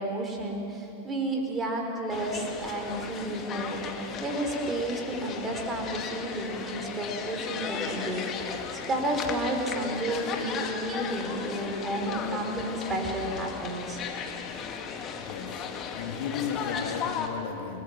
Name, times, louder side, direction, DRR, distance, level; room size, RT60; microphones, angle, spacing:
voice 1, 0.0-3.8 4.2-14.0, right 1 dB, 20° right, 4.5 m, -32 dB
sound 1, 2.1-17.3, left 6 dB, 30° left, 2.1 m, -36 dB
voice 2, 15.2-17.8, left 7 dB, 50° left, 2.0 m, -35 dB
29.5 x 20.0 x 6.1 m
figure-of-eight pair, 90°, 0 cm